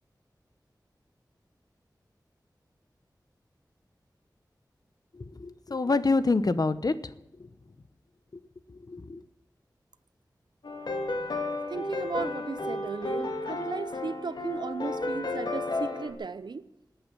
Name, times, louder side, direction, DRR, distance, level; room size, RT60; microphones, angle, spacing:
voice 1, 5.1-6.9 8.9-9.2, left 3 dB, 60° left, 13 dB, 1.0 m, -26 dB
sound 1, 10.6-16.1, left 2 dB, 80° left, 2.1 m, -33 dB
voice 2, 11.7-16.7, right 4 dB, 85° right, 14 dB, 0.7 m, -36 dB
19.5 x 8.7 x 7.1 m, 0.88 s
wide cardioid pair, 60°, 7 cm